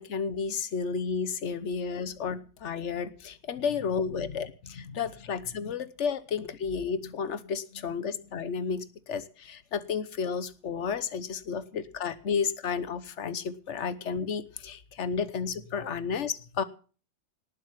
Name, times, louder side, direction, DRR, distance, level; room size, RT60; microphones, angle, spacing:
voice 1, 0.0-16.6, left 6 dB, 45° left, 14 dB, 1.0 m, -32 dB
18.5 x 7.5 x 7.4 m, 0.40 s
omnidirectional pair, 2.1 m